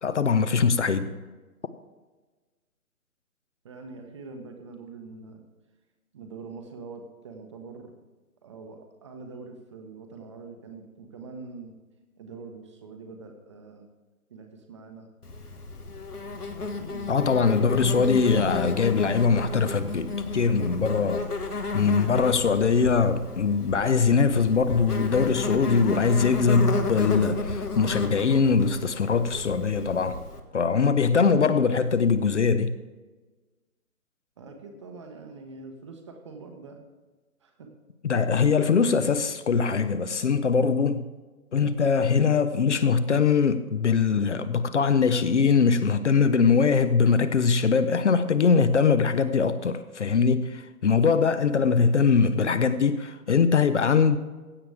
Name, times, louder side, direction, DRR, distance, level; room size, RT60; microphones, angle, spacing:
voice 1, 0.0-1.1 17.1-21.3 21.7-30.2 30.5-32.7 38.0-41.0 41.5-54.2, left 5 dB, 50° left, 0.8 m, -22 dB
voice 2, 3.6-5.4 6.1-7.9 8.4-11.7 12.2-13.9 14.3-15.1 16.8-17.3 34.4-36.8 37.4-37.7, right 4 dB, 20° right, 0.9 m, -44 dB
Insect, 15.2-30.4, left 3 dB, 85° left, 1.6 m, -32 dB
16.0 x 8.2 x 3.4 m
figure-of-eight pair, 145°, 45 cm